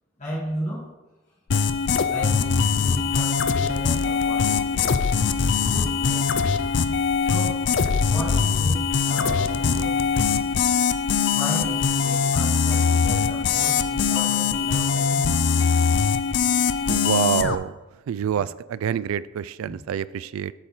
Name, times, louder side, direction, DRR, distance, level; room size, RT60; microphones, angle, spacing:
voice 1, 0.2-0.8 2.1-5.1 5.6-6.6 7.2-7.7 8.1-10.0 11.3-15.3, equal, 35° left, -6 dB, 2.0 m, -34 dB
sound 1, 1.5-17.6, left 6 dB, 60° left, 0.4 m, -22 dB
voice 2, 16.9-17.8 18.1-20.5, right 8 dB, 85° right, 17 dB, 0.3 m, -26 dB
8.0 x 4.3 x 5.6 m, 1.1 s
head